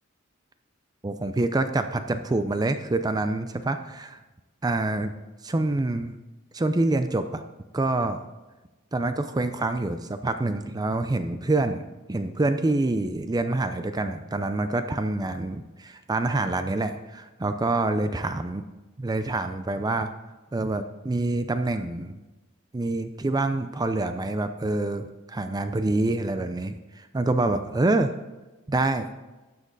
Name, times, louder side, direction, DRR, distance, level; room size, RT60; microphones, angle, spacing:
voice 1, 1.0-4.2 4.6-5.1 5.4-6.2 6.5-7.4 7.7-8.2 8.9-11.8 12.1-18.6 19.0-20.1 20.5-22.1 22.7-28.1 28.7-29.1, right 2 dB, 20° right, 9 dB, 0.4 m, -26 dB
12.5 x 7.6 x 3.9 m, 1.1 s
head